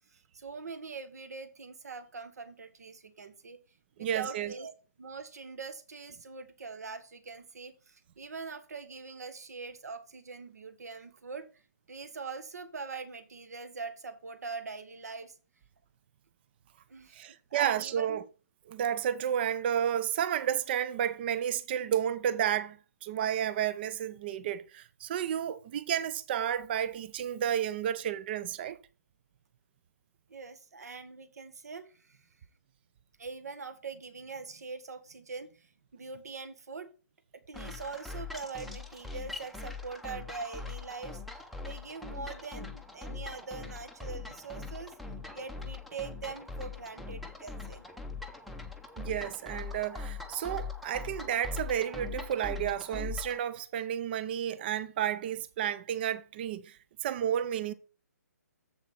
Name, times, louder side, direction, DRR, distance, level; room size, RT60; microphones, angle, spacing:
voice 1, 0.1-3.6 4.0-4.7 5.0-11.6 11.9-15.4 16.9-18.2 30.3-32.3 33.2-36.9 37.3-45.0 45.3-47.8, right 4 dB, 65° right, 1.5 m, -43 dB
voice 2, 4.0-4.5 17.1-18.2 18.7-28.8 49.0-56.7 57.0-57.7, right 9 dB, 35° right, 0.6 m, -31 dB
sound 1, 37.5-53.4, left 4 dB, ahead, 0.7 m, -41 dB
7.6 x 7.1 x 4.3 m
figure-of-eight pair, 135°, 9 cm